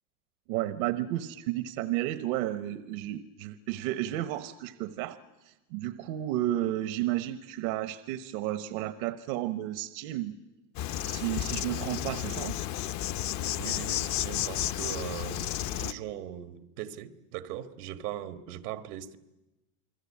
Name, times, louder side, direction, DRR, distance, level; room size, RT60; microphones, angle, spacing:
voice 1, 0.5-10.4 11.0-12.5, right 14 dB, 65° right, 1.2 m, -32 dB
Insect, 10.8-15.9, left 12 dB, 40° left, 0.8 m, -32 dB
voice 2, 13.6-19.2, right 12 dB, 85° right, 1.7 m, -40 dB
29.0 x 21.0 x 8.6 m
supercardioid pair, 145°, 45 cm